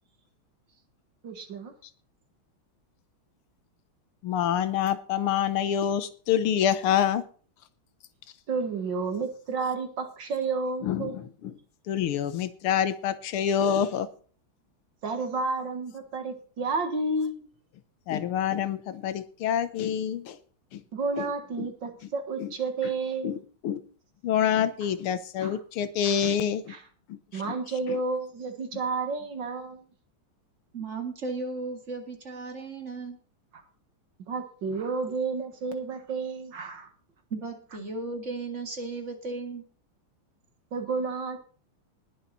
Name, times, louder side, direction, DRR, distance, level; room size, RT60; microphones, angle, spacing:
voice 1, 1.2-1.7 8.5-11.1 15.0-17.5 20.9-23.4 25.4-25.6 26.0-26.2 26.7-26.8 27.3-29.9 34.3-36.9 40.7-41.4, right 4 dB, 60° right, 7 dB, 2.3 m, -31 dB
voice 2, 4.2-7.2 10.8-11.2 11.9-14.1 18.1-20.4 20.7-20.8 21.2-21.3 21.6-21.7 22.4-22.5 23.2-23.4 23.6-23.8 24.2-26.7 27.1-27.2, left 9 dB, 90° left, 13 dB, 1.9 m, -26 dB
voice 3, 30.7-33.2 37.3-39.6, right 3 dB, 35° right, 3 dB, 2.4 m, -35 dB
20.0 x 7.3 x 4.1 m, 0.40 s
omnidirectional pair, 2.3 m